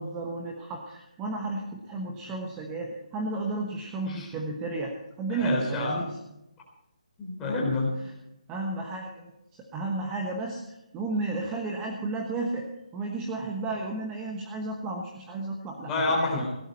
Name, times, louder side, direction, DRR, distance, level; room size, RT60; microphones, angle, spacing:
voice 1, 0.0-6.1 8.5-12.7 12.9-16.5, right 2 dB, 15° right, 0 dB, 1.2 m, -33 dB
voice 2, 5.3-6.0 7.2-7.9 15.8-16.5, left 2 dB, 10° left, -3 dB, 3.7 m, -28 dB
17.0 x 13.0 x 4.3 m, 0.88 s
hypercardioid pair, 165°, 4 cm